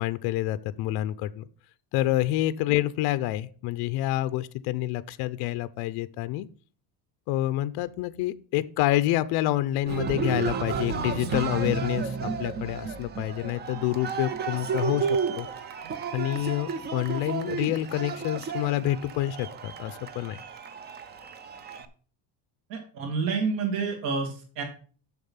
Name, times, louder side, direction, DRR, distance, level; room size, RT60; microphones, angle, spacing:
voice 1, 0.0-1.5 1.9-6.5 7.3-15.5 16.1-20.4, left 15 dB, 60° left, 15 dB, 0.6 m, -28 dB
Cheering, 9.9-21.9, right 5 dB, 25° right, 0.5 m, -32 dB
voice 2, 22.7-24.6, right 5 dB, 75° right, 3 dB, 2.5 m, -29 dB
7.2 x 6.6 x 5.6 m, 0.41 s
cardioid pair, 165°, 43 cm